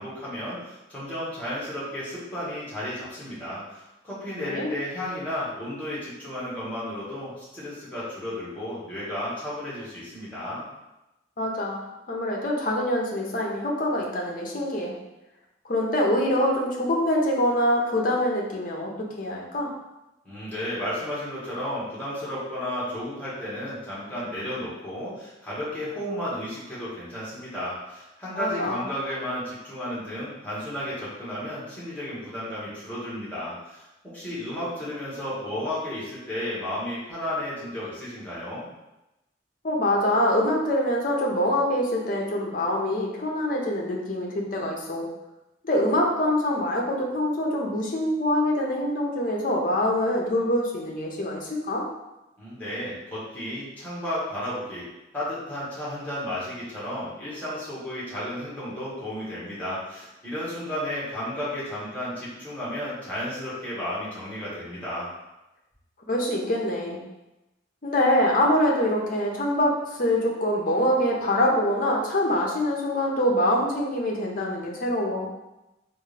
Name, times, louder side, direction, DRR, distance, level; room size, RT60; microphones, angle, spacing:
voice 1, 0.0-10.6 20.2-33.8 34.1-38.7 52.4-54.8 55.1-65.1, left 1 dB, 10° left, -9 dB, 1.3 m, -33 dB
voice 2, 11.4-14.9 15.6-19.7 28.3-28.8 39.6-45.1 45.6-51.8 66.1-67.0 67.8-75.3, left 1 dB, 45° left, -1 dB, 0.6 m, -25 dB
3.6 x 2.5 x 3.2 m, 0.96 s
head